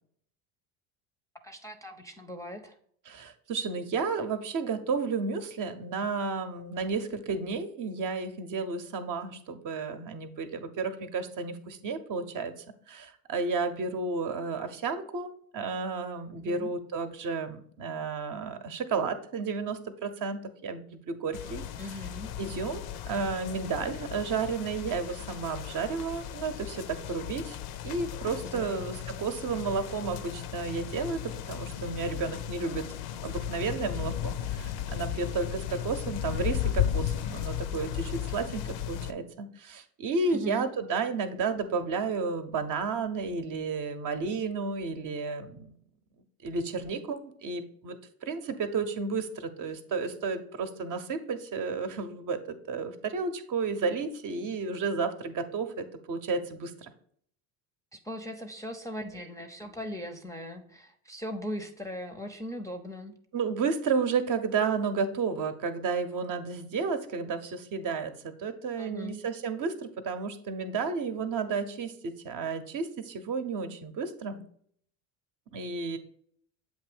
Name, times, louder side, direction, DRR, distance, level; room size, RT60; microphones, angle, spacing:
voice 1, 1.4-2.7 16.3-16.7 21.8-22.3 28.4-29.0 40.3-40.7 57.9-63.1 68.8-69.2, equal, 5° left, 5 dB, 0.6 m, -39 dB
voice 2, 3.1-12.5 12.9-22.0 22.4-27.6 27.8-32.9 33.2-45.8 46.4-56.9 63.3-74.4 75.5-76.0, right 4 dB, 45° right, 7 dB, 0.8 m, -32 dB
sound 1, 21.3-39.1, left 10 dB, 60° left, 0.6 m, -35 dB
7.7 x 2.7 x 5.0 m, 0.64 s
hypercardioid pair, 75°, 43 cm